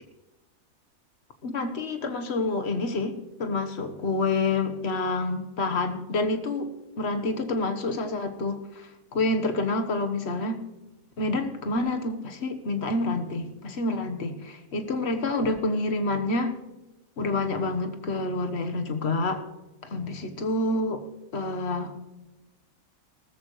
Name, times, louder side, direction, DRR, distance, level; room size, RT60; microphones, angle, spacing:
voice 1, 1.4-6.7 7.0-10.6 11.2-16.6 17.2-19.4 19.8-21.0 21.3-21.9, left 2 dB, 50° left, 6 dB, 1.5 m, -28 dB
19.0 x 13.5 x 3.2 m, 1.1 s
omnidirectional pair, 1.5 m